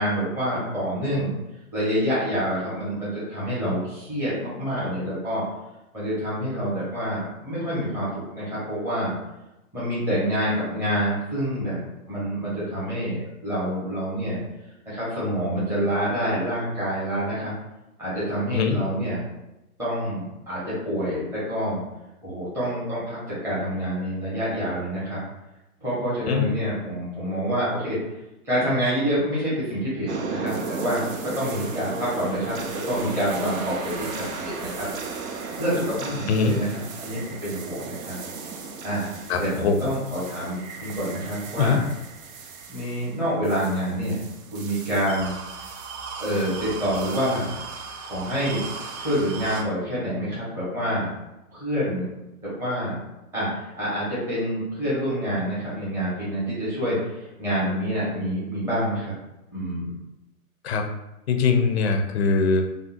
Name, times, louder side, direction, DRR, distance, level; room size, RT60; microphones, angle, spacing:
voice 1, 0.0-1.3 1.7-5.4 5.9-9.1 9.7-11.8 12.1-14.4 14.9-17.5 18.0-19.2 19.8-21.8 22.2-25.2 25.8-28.0 28.4-31.0 31.4-32.6 32.9-34.9 35.6-38.1 38.8-39.0 39.4-41.8 42.7-44.2 44.5-45.3 46.2-51.1 51.5-52.0 52.6-53.0 53.3-59.1 59.5-59.9, equal, 5° right, -11 dB, 0.8 m, -27 dB
sound 1, 30.1-49.6, right 4 dB, 65° right, 0.6 m, -35 dB
voice 2, 39.3-39.8 41.6-41.8 60.6-60.8 61.3-62.6, left 5 dB, 50° left, 4 dB, 0.5 m, -21 dB
3.6 x 2.2 x 2.5 m, 0.96 s
hypercardioid pair, 140°, 44 cm